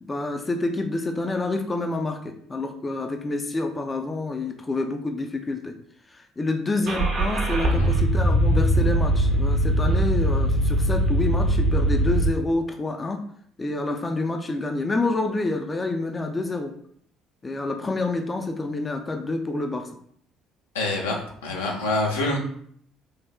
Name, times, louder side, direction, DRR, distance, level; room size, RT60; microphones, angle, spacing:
voice 1, 0.0-5.8 6.1-13.2 13.6-16.7 17.4-19.9, left 2 dB, 25° left, 5 dB, 0.4 m, -28 dB
Car / Engine starting, 6.9-12.3, right 1 dB, 55° right, 0.7 m, -21 dB
voice 2, 20.7-22.4, left 2 dB, 80° left, -1 dB, 0.5 m, -26 dB
3.2 x 2.7 x 2.2 m, 0.62 s
figure-of-eight pair, 55°, 0 cm